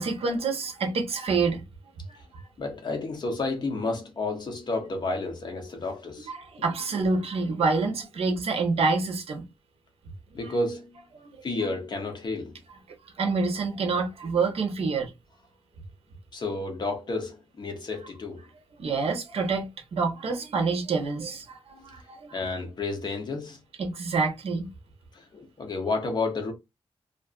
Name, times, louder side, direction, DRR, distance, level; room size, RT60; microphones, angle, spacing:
voice 1, 0.0-1.6 2.1-2.2 6.2-9.4 10.3-10.4 11.2-11.4 13.2-15.1 18.8-22.4 23.8-24.7, right 4 dB, 70° right, 0.8 m, -27 dB
voice 2, 2.6-6.3 10.3-11.0 11.4-12.6 16.3-18.5 18.9-19.0 22.3-23.6 25.1-26.5, left 3 dB, 45° left, 0.7 m, -31 dB
2.5 x 2.4 x 2.3 m
wide cardioid pair, 165°, 11 cm